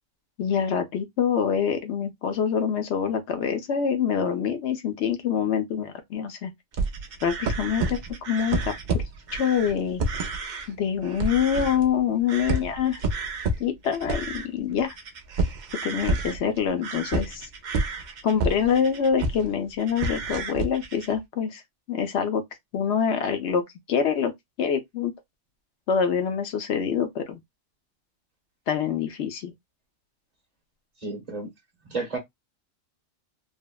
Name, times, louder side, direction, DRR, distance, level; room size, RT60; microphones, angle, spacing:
voice 1, 0.4-6.5 7.2-9.0 9.3-10.0 10.7-13.0 13.6-14.9 15.8-17.5 18.2-21.6 21.9-22.4 22.7-23.6 23.9-24.3 24.6-25.1 25.9-27.4 28.7-29.5, left 7 dB, 60° left, 0.9 m, -25 dB
sound 1, 6.7-10.7 11.0-12.0 12.3-19.5 19.8-21.2, right 3 dB, 70° right, 0.4 m, -29 dB
voice 2, 31.0-31.5 31.8-32.2, right 3 dB, 35° right, 0.9 m, -31 dB
3.4 x 2.0 x 2.2 m
omnidirectional pair, 1.4 m